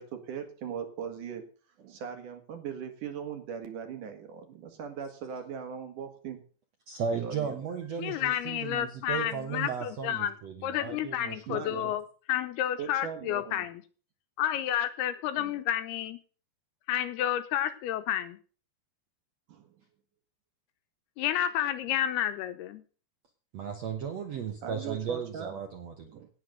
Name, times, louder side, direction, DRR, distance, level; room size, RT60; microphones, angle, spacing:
voice 1, 0.0-1.5 1.8-6.4 7.1-7.9 11.5-11.9 12.8-13.6 15.4-15.5 19.5-19.7 24.6-25.6 26.1-26.3, right 7 dB, 55° right, 6 dB, 2.7 m, -39 dB
voice 2, 6.9-11.9 23.5-26.1, right 6 dB, 85° right, 5 dB, 1.4 m, -36 dB
voice 3, 8.0-10.4 10.6-12.0 12.3-13.8 14.4-16.2 16.9-18.4 21.2-22.8, left 11 dB, 75° left, 11 dB, 2.5 m, -30 dB
17.5 x 6.8 x 6.5 m, 0.40 s
omnidirectional pair, 5.1 m